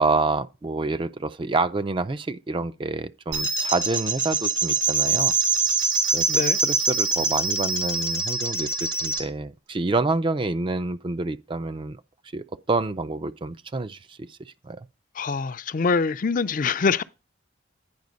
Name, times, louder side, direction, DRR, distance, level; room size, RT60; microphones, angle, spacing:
voice 1, 0.0-5.3 6.1-8.7 9.0-12.0 12.3-14.4 14.6-14.9, right 3 dB, 25° right, 0.4 m, -27 dB
sound 1, 3.3-9.2, right 4 dB, 70° right, 1.6 m, -24 dB
voice 2, 6.3-6.6 15.2-17.0, left 5 dB, 45° left, 0.4 m, -24 dB
9.5 x 4.8 x 5.1 m
head